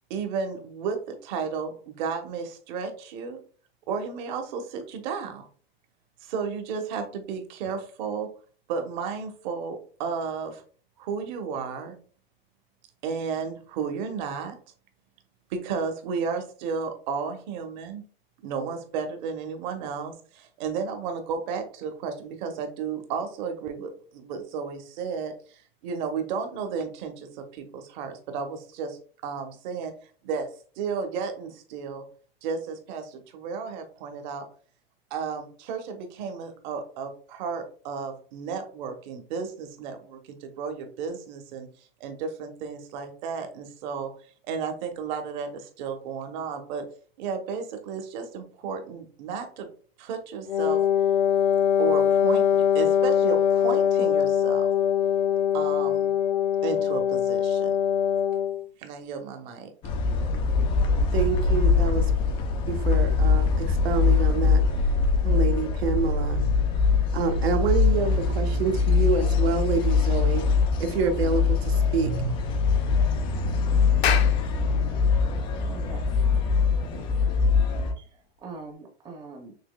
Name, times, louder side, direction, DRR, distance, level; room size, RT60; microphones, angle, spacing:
voice 1, 0.1-3.4 3.9-5.5 6.2-8.3 8.7-10.6 11.0-11.9 13.0-14.6 15.5-18.0 18.4-29.9 30.2-30.5 30.8-32.0 32.4-34.5 35.1-41.7 42.0-44.1 44.5-46.8 47.2-49.7 50.0-50.8 51.8-54.7 55.5-56.1 56.6-57.7 58.8-59.7, right 5 dB, 45° right, 6 dB, 1.0 m, -33 dB
Wind instrument woodwind instrument, 50.5-58.6, left 9 dB, 55° left, 0.6 m, -22 dB
sound 1, 59.8-77.9, left 4 dB, 20° left, 0.3 m, -23 dB
voice 2, 61.1-62.0 62.7-64.6 65.2-66.4 67.1-70.5 70.8-72.1, right 5 dB, 85° right, 5 dB, 1.0 m, -27 dB
Clapping, 74.0-78.7, left 8 dB, 85° left, 0.9 m, -33 dB
voice 3, 75.6-76.3 76.7-77.1 78.0-79.5, right 3 dB, 15° right, 2 dB, 0.6 m, -44 dB
6.1 x 2.9 x 2.2 m, 0.42 s
supercardioid pair, 150°, 31 cm